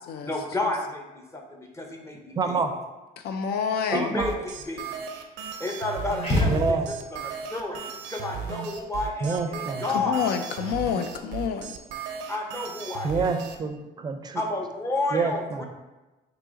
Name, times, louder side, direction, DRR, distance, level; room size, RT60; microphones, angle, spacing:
voice 1, 0.2-2.6 3.9-4.9 5.6-6.8 7.1-10.2 12.3-13.3 14.3-15.7, left 2 dB, 15° left, 2 dB, 0.7 m, -31 dB
voice 2, 2.3-2.7 3.9-4.3 6.4-6.9 9.2-9.9 13.0-14.4 15.1-15.7, right 4 dB, 25° right, 6 dB, 0.4 m, -27 dB
voice 3, 3.2-4.1 9.9-11.8, left 7 dB, 70° left, 7 dB, 0.4 m, -28 dB
sound 1, 4.2-13.6, right 7 dB, 85° right, 0.5 m, -36 dB
sound 2, 6.2-7.2, left 1 dB, 40° left, 1.4 m, -25 dB
3.6 x 2.9 x 3.9 m, 1.1 s
cardioid pair, 110°, 17 cm